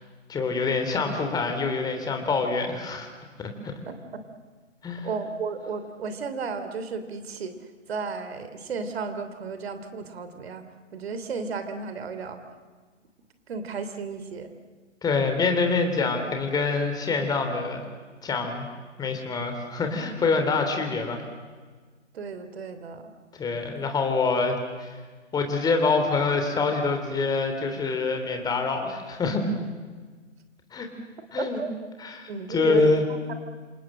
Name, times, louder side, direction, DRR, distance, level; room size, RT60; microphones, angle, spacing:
voice 1, 0.3-3.1 3.4-3.7 4.8-5.1 15.0-17.8 18.2-18.7 19.0-21.2 23.3-25.0 25.3-29.5 30.7-30.9 31.3-31.6 32.0-33.0, left 4 dB, 10° left, 5 dB, 3.2 m, -25 dB
voice 2, 3.9-4.2 5.0-10.6 10.9-12.6 13.5-14.5 22.1-23.1 31.4-31.7 32.3-33.3, right 5 dB, 55° right, 9 dB, 3.0 m, -34 dB
28.0 x 27.0 x 7.7 m, 1.4 s
figure-of-eight pair, 130°, 37 cm